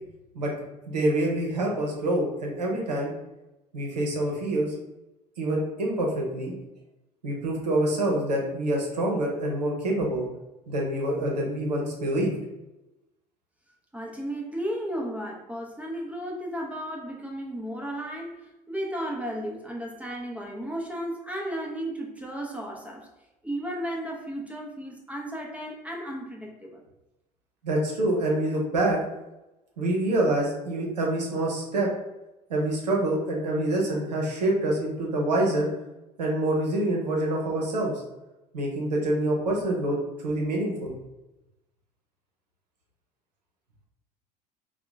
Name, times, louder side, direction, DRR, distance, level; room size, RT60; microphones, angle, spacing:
voice 1, 0.9-3.1 3.7-4.7 5.4-6.5 7.2-10.2 10.7-12.3 27.6-29.0 29.8-31.9 32.5-35.7 36.2-37.9 38.5-40.9, right 1 dB, 85° right, -1 dB, 0.8 m, -26 dB
voice 2, 13.9-18.4 18.7-23.1 23.4-26.8, equal, 5° right, -1 dB, 0.7 m, -34 dB
2.9 x 2.3 x 3.4 m, 0.97 s
hypercardioid pair, 70°, 20 cm